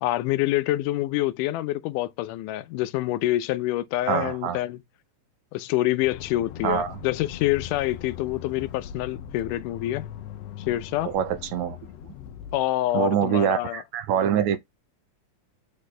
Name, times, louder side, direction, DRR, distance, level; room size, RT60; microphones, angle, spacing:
voice 1, 0.0-4.8 5.5-10.0 10.7-11.1 12.5-13.8, left 16 dB, 85° left, 2.1 m, -26 dB
voice 2, 4.1-4.6 6.6-7.0 11.1-11.8 12.9-14.6, right 9 dB, 80° right, 1.8 m, -24 dB
Accelerating revving vroom, 6.0-12.6, left 9 dB, 70° left, 1.7 m, -40 dB
7.4 x 4.0 x 3.2 m
omnidirectional pair, 3.6 m